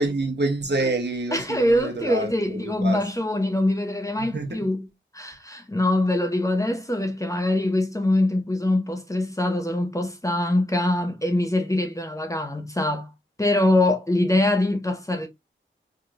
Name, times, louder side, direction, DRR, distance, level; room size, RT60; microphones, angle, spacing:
voice 1, 0.0-3.0 4.2-4.6, right 2 dB, 60° right, 1.2 m, -27 dB
voice 2, 1.3-4.9 5.1-13.1 13.4-15.3, left 1 dB, 15° left, 0.7 m, -23 dB
4.7 x 2.9 x 2.5 m
wide cardioid pair, 80°, 20 cm